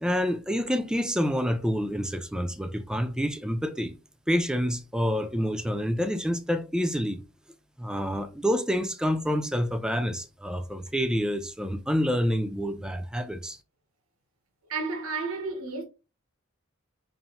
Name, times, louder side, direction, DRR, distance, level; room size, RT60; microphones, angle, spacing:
voice 1, 0.0-3.9 4.3-7.2 7.8-13.6, equal, 5° right, 0.4 m, -28 dB
voice 2, 14.7-15.8, right 4 dB, 85° right, 1.0 m, -31 dB
5.5 x 2.6 x 2.9 m
head